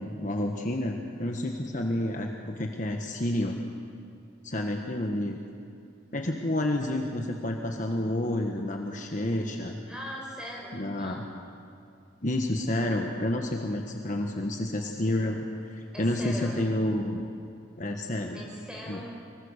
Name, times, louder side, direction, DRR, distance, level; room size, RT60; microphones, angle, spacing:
voice 1, 0.0-3.6 4.4-5.4 6.1-9.8 10.7-11.2 12.2-17.2 17.8-18.4 18.9-19.0, left 1 dB, 40° left, 2 dB, 1.4 m, -29 dB
voice 2, 9.9-11.2 15.9-16.7 18.3-19.1, equal, 5° right, -3 dB, 6.0 m, -40 dB
25.5 x 23.5 x 6.6 m, 2.5 s
head